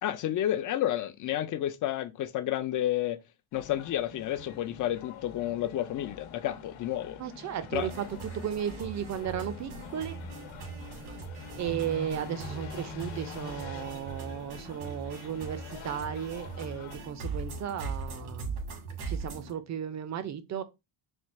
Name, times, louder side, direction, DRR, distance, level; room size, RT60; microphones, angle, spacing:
voice 1, 0.0-3.2 3.5-7.2 7.7-7.9, left 12 dB, 40° left, 0.5 m, -31 dB
sound 1, 3.5-17.0, left 5 dB, 85° left, 1.1 m, -46 dB
voice 2, 7.2-8.0 8.3-10.2 11.6-18.5 19.1-20.6, right 9 dB, 35° right, 0.6 m, -35 dB
sound 2, 7.7-19.5, right 4 dB, 90° right, 2.2 m, -40 dB
4.4 x 2.4 x 4.4 m
cardioid pair, 150°, 49 cm